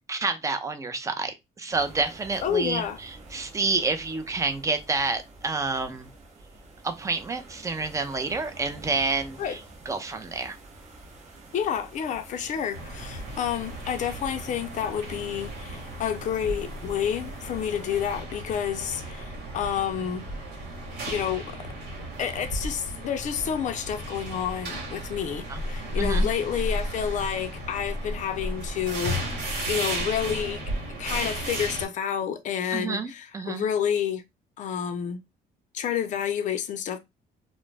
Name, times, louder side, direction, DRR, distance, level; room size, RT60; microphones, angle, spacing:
voice 1, 0.1-6.1 6.8-9.6 9.9-10.6 25.5-25.6 26.0-26.3 32.7-33.7, right 3 dB, 20° right, 0.5 m, -29 dB
sound 1, 1.7-18.1, right 2 dB, 45° right, 0.9 m, -48 dB
voice 2, 2.4-3.0 9.4-9.6 11.5-20.2 21.1-21.7 22.2-30.6 31.0-34.2 34.6-35.2 35.7-37.0, left 8 dB, 45° left, 0.5 m, -29 dB
sound 2, 12.7-31.8, equal, 80° right, 1.1 m, -34 dB
2.3 x 2.1 x 3.2 m
cardioid pair, 110°, 17 cm